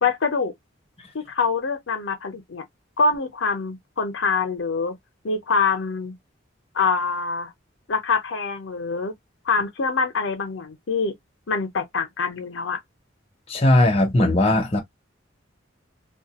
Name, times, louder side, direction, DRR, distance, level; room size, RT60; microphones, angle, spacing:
voice 1, 0.0-0.5 1.1-2.6 3.0-4.9 5.2-6.1 6.7-7.5 7.9-9.1 9.5-11.1 11.5-12.8, left 4 dB, 80° left, 0.6 m, -24 dB
voice 2, 13.5-14.8, left 1 dB, 30° left, 0.7 m, -18 dB
2.3 x 2.2 x 2.8 m
head